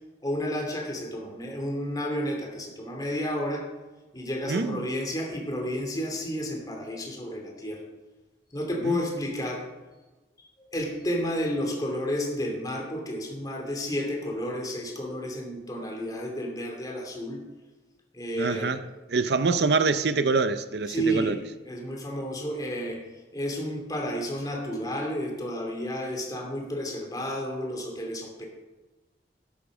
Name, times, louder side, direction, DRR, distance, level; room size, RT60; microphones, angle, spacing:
voice 1, 0.2-3.7 4.1-7.8 8.5-9.7 10.7-17.4 18.1-18.7 20.9-23.0 23.3-28.5, equal, 20° left, 2.5 m, -31 dB
voice 2, 4.5-4.9 8.8-9.0 18.4-18.8 19.1-21.4, right 4 dB, 70° right, 0.6 m, -25 dB
13.0 x 10.5 x 5.0 m
head